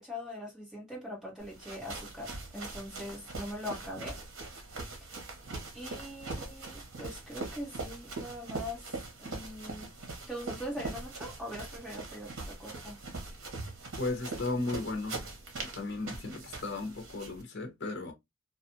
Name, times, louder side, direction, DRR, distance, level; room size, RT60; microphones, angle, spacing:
voice 1, 0.0-4.2 5.0-5.1 5.7-9.9 10.3-13.0, left 1 dB, 5° right, 1.2 m, -42 dB
sound 1, 1.4-17.4, right 3 dB, 65° right, 1.0 m, -42 dB
voice 2, 14.0-15.2 15.7-18.1, left 2 dB, 55° left, 0.8 m, -35 dB
2.5 x 2.4 x 2.6 m
head